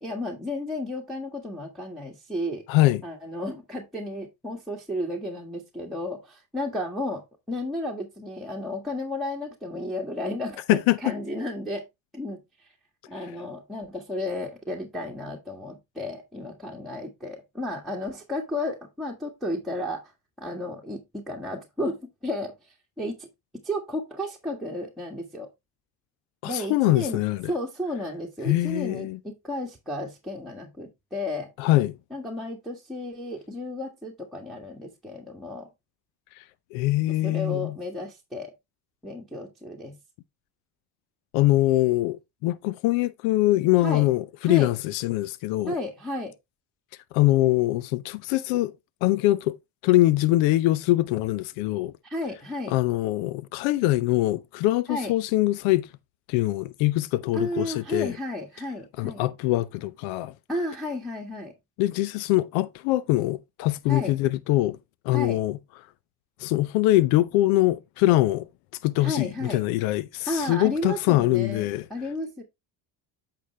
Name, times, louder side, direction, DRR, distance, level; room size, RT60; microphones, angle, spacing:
voice 1, 0.0-2.6 3.0-7.2 7.5-11.8 12.1-12.4 13.1-20.0 20.4-23.3 23.6-25.5 26.4-27.2 27.5-31.5 32.1-35.7 37.2-38.5 39.0-40.0 43.8-44.1 44.4-44.7 45.7-46.3 52.0-52.7 54.9-55.1 57.3-59.2 60.5-61.5 63.9-64.1 65.1-65.4 69.0-69.6 70.2-72.4, left 1 dB, ahead, 1.7 m, -33 dB
voice 2, 2.7-3.0 10.7-11.0 26.4-27.4 28.4-29.2 31.6-32.0 36.4-36.5 36.7-37.8 41.3-45.7 47.1-48.7 49.0-49.6 49.8-51.9 52.7-55.9 56.3-58.1 59.0-60.3 61.8-64.8 65.0-65.6 66.4-68.5 68.8-71.8, left 17 dB, 80° left, 0.7 m, -23 dB
8.4 x 5.8 x 3.2 m
supercardioid pair, 90°, 47 cm